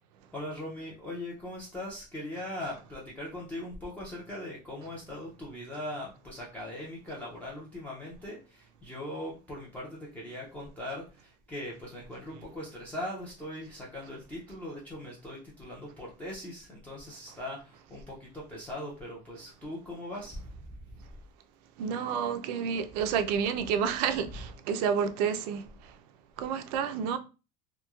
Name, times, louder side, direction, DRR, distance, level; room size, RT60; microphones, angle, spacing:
voice 1, 0.3-21.1, left 1 dB, 5° left, 0.4 m, -40 dB
voice 2, 21.8-25.9 26.4-27.2, right 7 dB, 70° right, 0.4 m, -30 dB
3.0 x 2.6 x 2.3 m
cardioid pair, 175°, 21 cm